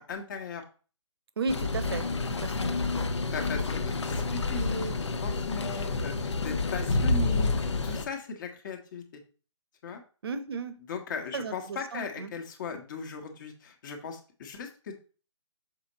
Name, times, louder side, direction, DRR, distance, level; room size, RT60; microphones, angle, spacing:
voice 1, 0.1-0.6 2.0-2.2 3.3-9.2 9.8-10.0 10.9-15.0, left 4 dB, 40° left, 5 dB, 1.2 m, -37 dB
voice 2, 1.4-2.1 2.4-3.1 10.2-10.8 11.3-12.3, right 4 dB, 50° right, 11 dB, 0.9 m, -35 dB
sound 1, 1.5-8.1, left 3 dB, 65° left, 0.9 m, -29 dB
6.8 x 4.4 x 4.1 m, 0.38 s
figure-of-eight pair, 135°, 16 cm